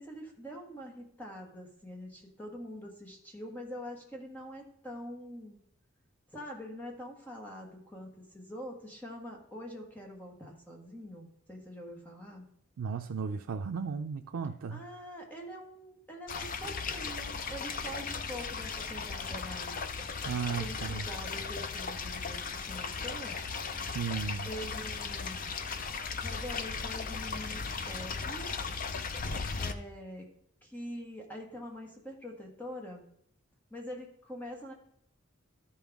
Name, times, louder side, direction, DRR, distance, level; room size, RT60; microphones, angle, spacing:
voice 1, 0.0-5.6 6.3-12.5 14.7-19.7 20.6-23.4 24.4-25.6 26.2-28.5 29.6-30.3 30.6-33.0 33.7-34.7, equal, 10° left, 1.5 m, -44 dB
voice 2, 12.8-14.8 20.2-21.0 23.8-24.5, right 6 dB, 90° right, 0.4 m, -35 dB
sound 1, 16.3-29.7, left 5 dB, 40° left, 0.5 m, -37 dB
13.0 x 5.6 x 3.5 m
head